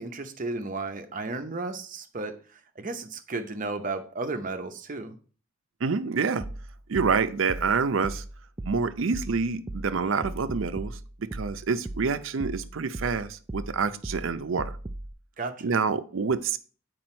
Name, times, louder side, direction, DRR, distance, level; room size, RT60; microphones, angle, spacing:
voice 1, 0.0-2.4 2.8-5.2 15.4-15.7, right 3 dB, 40° right, 7 dB, 0.8 m, -34 dB
voice 2, 5.8-6.4 6.9-8.2 8.7-14.7 15.6-16.6, right 5 dB, 75° right, 11 dB, 0.5 m, -27 dB
sound 1, 6.4-15.1, right 1 dB, 20° right, 0.3 m, -38 dB
7.8 x 4.9 x 4.3 m, 0.40 s
head